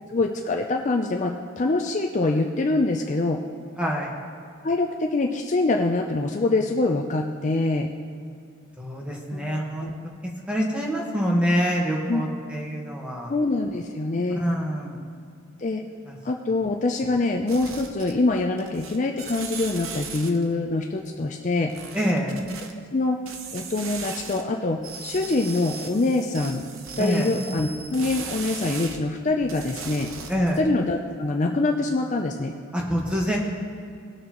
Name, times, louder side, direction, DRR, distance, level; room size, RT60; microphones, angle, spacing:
voice 1, 0.1-3.4 4.6-7.9 9.3-9.9 12.1-12.2 13.3-14.4 15.6-15.8 16.2-21.7 22.9-23.2 23.5-26.6 27.0-30.1 30.6-32.5, left 2 dB, 35° left, 2 dB, 0.5 m, -24 dB
voice 2, 3.8-4.1 8.8-9.9 10.5-13.3 14.4-15.0 16.1-16.2 21.9-22.4 27.0-27.3 30.3-30.6 32.7-33.4, equal, 5° right, -2 dB, 1.3 m, -25 dB
sound 1, 17.5-18.3 18.6-20.5 21.7-22.7 23.3-24.4 24.8-29.0 29.4-30.7, right 5 dB, 75° right, 0.9 m, -38 dB
19.5 x 6.5 x 3.0 m, 2.3 s
head